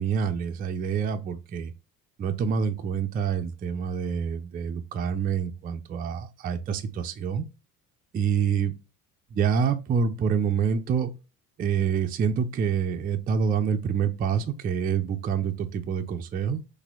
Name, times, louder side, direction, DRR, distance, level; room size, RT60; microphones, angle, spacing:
voice 1, 0.0-1.7 2.2-7.4 8.1-8.7 9.3-11.1 11.6-16.6, right 7 dB, 20° right, 0.3 m, -27 dB
4.1 x 2.6 x 2.3 m
hypercardioid pair, 70°, 44 cm